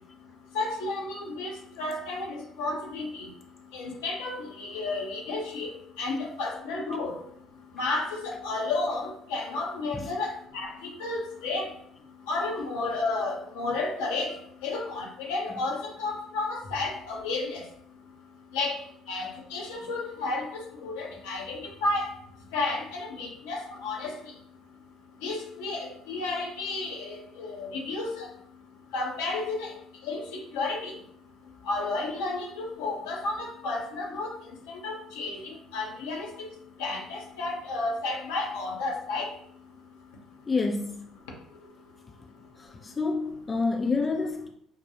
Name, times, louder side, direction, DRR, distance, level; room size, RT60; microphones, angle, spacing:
voice 1, 0.5-3.3 3.7-5.7 6.0-7.1 7.8-11.7 12.3-14.3 14.6-17.6 18.5-18.8 19.1-22.1 22.5-24.1 25.2-28.3 28.9-29.7 30.1-30.2 30.5-30.9 31.7-34.4 34.7-36.5 36.8-39.3, left 3 dB, 75° left, 0 dB, 0.8 m, -32 dB
voice 2, 40.5-41.1 42.6-44.5, left 4 dB, 30° left, 4 dB, 0.4 m, -28 dB
5.1 x 2.2 x 2.8 m, 0.68 s
hypercardioid pair, 60°, 0 cm